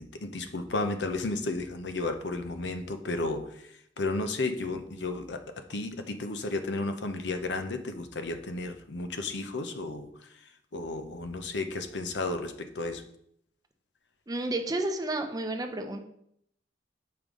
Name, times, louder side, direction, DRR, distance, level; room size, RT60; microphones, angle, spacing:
voice 1, 0.0-3.7 4.0-5.4 5.7-10.1 10.7-13.0, left 2 dB, 75° left, 8 dB, 0.7 m, -33 dB
voice 2, 14.3-16.0, right 2 dB, 20° right, 5 dB, 0.6 m, -31 dB
7.7 x 5.2 x 3.7 m, 0.72 s
head